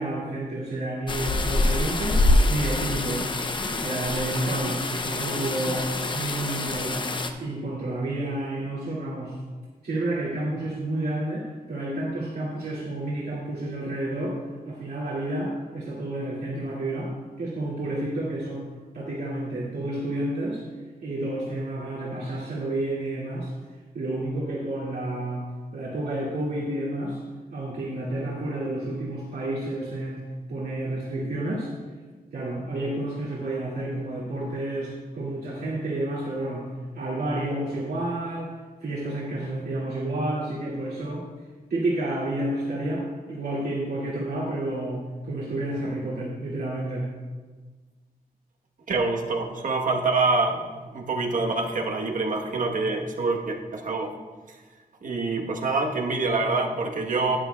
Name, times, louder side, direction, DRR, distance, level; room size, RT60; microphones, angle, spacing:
voice 1, 0.0-3.3 3.7-7.1 7.4-9.4 9.8-14.4 14.6-17.1 17.4-20.6 21.0-23.5 23.9-27.2 27.5-31.7 32.3-36.7 36.9-38.5 38.8-41.2 41.7-47.1, right 1 dB, 75° right, -8 dB, 2.2 m, -30 dB
sound 1, 1.1-7.3, left 2 dB, 30° left, 0.6 m, -25 dB
voice 2, 48.9-54.1 54.5-54.6 55.0-57.4, right 3 dB, 55° right, 2 dB, 1.1 m, -26 dB
12.5 x 10.5 x 2.3 m, 1.4 s
wide cardioid pair, 170°, 16 cm